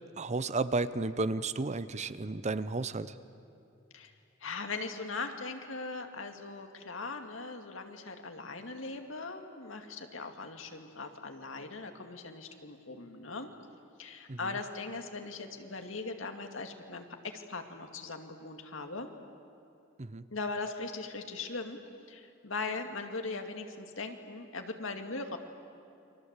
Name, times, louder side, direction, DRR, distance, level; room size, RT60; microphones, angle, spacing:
voice 1, 0.2-3.2 14.3-14.5 20.0-20.3, right 3 dB, 35° right, 14 dB, 0.7 m, -33 dB
voice 2, 4.4-13.5 14.0-19.1 20.3-21.8 22.1-25.4, left 3 dB, 75° left, 5 dB, 2.2 m, -40 dB
29.5 x 24.5 x 8.2 m, 2.6 s
head